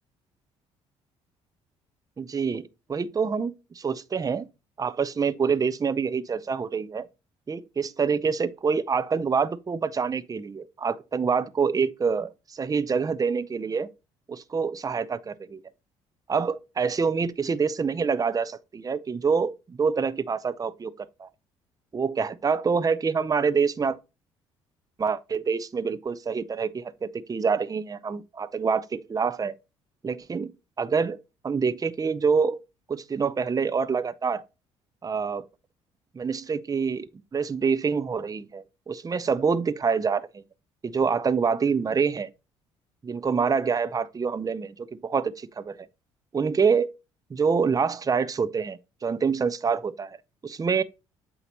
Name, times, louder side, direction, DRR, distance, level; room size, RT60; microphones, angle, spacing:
voice 1, 2.2-4.5 4.8-7.1 7.5-13.9 14.3-15.6 16.3-21.3 21.9-24.0 25.0-29.5 30.0-30.5 30.8-31.2 31.4-32.6 32.9-34.4 35.0-35.4 36.1-37.1 37.3-40.4 40.8-42.3 43.0-45.8 46.3-46.9 47.3-50.2 50.4-50.8, right 5 dB, 25° right, 0.6 m, -26 dB
8.2 x 2.8 x 5.3 m
hypercardioid pair, 55°, 14 cm